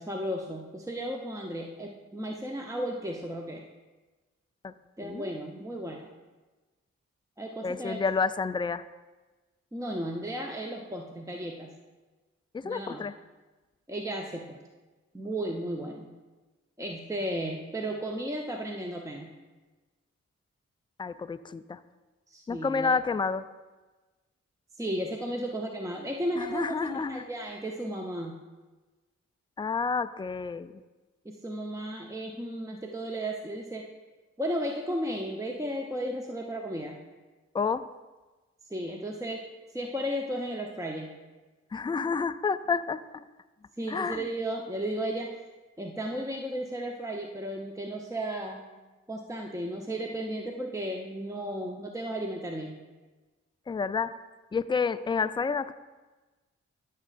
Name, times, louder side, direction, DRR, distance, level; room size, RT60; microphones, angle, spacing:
voice 1, 0.0-3.6 5.0-6.1 7.4-8.0 9.7-11.7 12.6-13.0 13.9-14.6 15.1-16.1 16.8-19.3 22.3-22.9 24.8-28.3 31.2-33.8 34.4-37.0 38.7-39.4 39.7-41.1 43.8-45.4 45.8-48.6 49.1-52.8, right 1 dB, 10° right, 1 dB, 0.8 m, -34 dB
voice 2, 7.6-8.8 12.5-13.2 21.0-21.8 22.5-23.4 26.4-27.2 29.6-30.7 37.5-37.8 41.7-43.2 43.9-44.2 53.7-54.1 54.5-55.7, left 5 dB, 15° left, 12 dB, 0.3 m, -29 dB
13.0 x 6.3 x 2.5 m, 1.2 s
cardioid pair, 45°, 29 cm